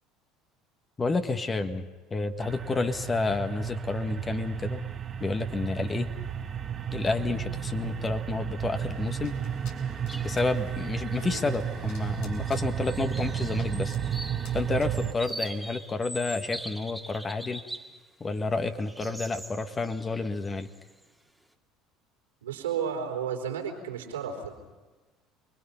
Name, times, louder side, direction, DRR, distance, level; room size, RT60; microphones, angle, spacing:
voice 1, 1.0-4.9 5.2-6.1 6.9-9.4 10.2-13.9 14.5-17.6 18.2-20.7, left 3 dB, 25° left, 8 dB, 1.6 m, -30 dB
sound 1, 2.4-15.1, right 9 dB, 40° right, 1.2 m, -33 dB
sound 2, 8.8-15.7, left 4 dB, 70° left, 4.3 m, -50 dB
sound 3, 10.1-10.4 10.8-10.9 11.8-12.2 12.5-18.0 18.4-21.0, right 1 dB, ahead, 2.1 m, -42 dB
voice 2, 22.4-24.5, right 7 dB, 80° right, 1 dB, 3.5 m, -33 dB
28.0 x 22.0 x 5.7 m, 1.2 s
hypercardioid pair, 65°, 0 cm